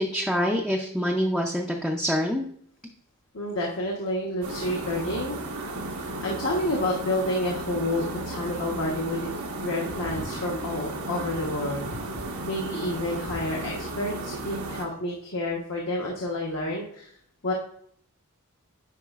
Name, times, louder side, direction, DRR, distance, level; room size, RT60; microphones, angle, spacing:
voice 1, 0.0-2.4, equal, ahead, -1 dB, 0.5 m, -26 dB
voice 2, 3.3-5.4 5.7-9.2 9.6-11.9 12.5-17.1 17.4-17.5, left 1 dB, 60° left, -2 dB, 1.1 m, -29 dB
sound 1, 4.4-14.8, right 2 dB, 85° right, 1.1 m, -34 dB
9.5 x 4.9 x 2.4 m, 0.66 s
head